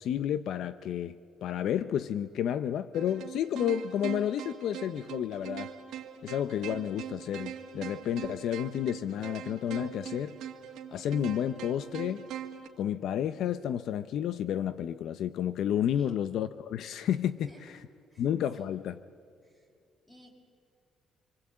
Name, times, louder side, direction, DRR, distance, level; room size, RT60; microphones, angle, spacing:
voice 1, 0.0-5.7 6.2-10.4 10.9-12.2 12.8-17.4 18.2-19.0, left 10 dB, 70° left, 13 dB, 0.7 m, -31 dB
sound 1, 2.9-12.7, right 9 dB, 80° right, 2.1 m, -42 dB
voice 2, 17.3-17.8 18.1-18.8 19.4-19.7 20.1-20.3, left 1 dB, 15° left, 1 dB, 6.1 m, -56 dB
26.5 x 24.5 x 8.7 m, 2.3 s
cardioid pair, 130°, 0 cm